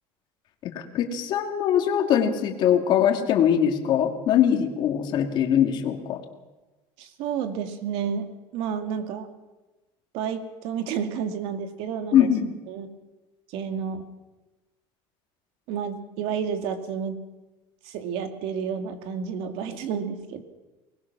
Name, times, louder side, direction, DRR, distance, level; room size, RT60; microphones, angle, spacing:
voice 1, 0.7-6.2 12.1-12.5, left 9 dB, 45° left, 4 dB, 2.5 m, -22 dB
voice 2, 7.0-9.3 10.1-12.3 12.7-12.9 13.5-14.0 15.7-17.2 17.8-20.4, right 7 dB, 65° right, 7 dB, 2.4 m, -30 dB
23.5 x 20.0 x 6.2 m, 1.1 s
cardioid pair, 160°, 11 cm